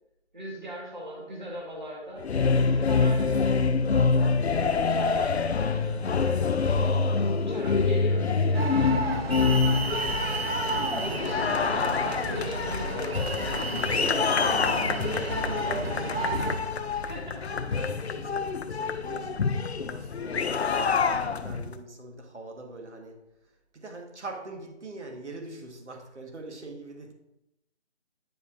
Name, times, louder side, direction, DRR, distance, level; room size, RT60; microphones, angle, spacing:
voice 1, 0.3-2.3 2.7-3.6 4.5-6.6 7.3-10.2 11.0-15.6 16.1-16.5 16.9-17.4 17.7-18.1, right 1 dB, 40° right, -2 dB, 1.5 m, -41 dB
sound 1, 2.2-21.7, left 4 dB, 65° left, 0.5 m, -26 dB
voice 2, 4.6-4.9 16.3-16.4 17.5-27.1, right 2 dB, 75° right, 3 dB, 1.4 m, -44 dB
sound 2, 8.5-16.6, right 2 dB, 60° right, 0.9 m, -31 dB
9.0 x 5.2 x 2.5 m, 0.89 s
figure-of-eight pair, 180°, 35 cm